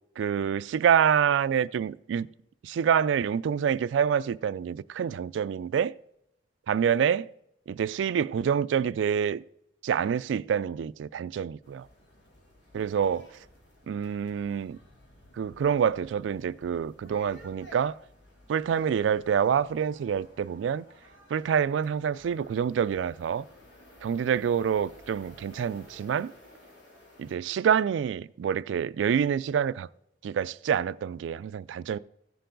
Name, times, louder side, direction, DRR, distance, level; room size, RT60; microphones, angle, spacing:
voice 1, 0.2-2.3 2.6-5.9 6.7-7.3 7.7-9.4 9.8-11.9 12.7-13.3 13.9-14.8 15.4-18.0 18.5-20.8 21.3-23.4 24.0-26.3 27.2-29.9 30.2-32.0, right 8 dB, 85° right, 0.3 m, -27 dB
sound 1, 11.6-27.4, left 1 dB, 75° left, 3.1 m, -55 dB
15.5 x 6.8 x 3.8 m
head